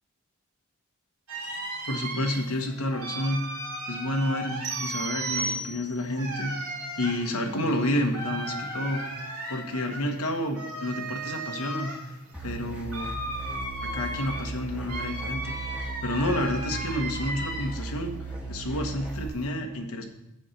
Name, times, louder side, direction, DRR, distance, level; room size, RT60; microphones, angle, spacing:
sound 1, 1.3-17.9 18.3-19.4, right 1 dB, 85° right, 2.4 m, -36 dB
voice 1, 1.9-3.4 3.9-6.5 7.0-9.0 9.5-12.0 12.4-13.1 13.9-18.1 18.5-20.1, left 1 dB, 90° left, 3 dB, 1.3 m, -30 dB
sound 2, 4.6-6.2, right 3 dB, 55° right, 2.2 m, -33 dB
sound 3, 12.3-19.3, right 3 dB, 5° right, 1.2 m, -37 dB
7.1 x 5.6 x 6.9 m, 0.86 s
head